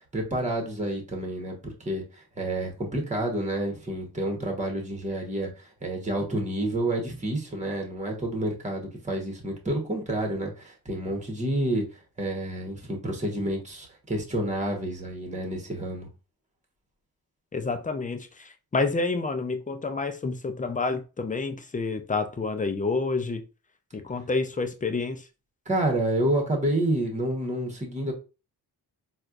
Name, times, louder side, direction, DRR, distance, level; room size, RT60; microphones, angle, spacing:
voice 1, 0.1-11.9 12.2-16.1 25.7-28.1, right 1 dB, 20° right, 1.2 m, -29 dB
voice 2, 17.5-23.4 23.9-25.2, left 3 dB, 20° left, 0.5 m, -29 dB
4.2 x 2.4 x 2.5 m
cardioid pair, 75°, 39 cm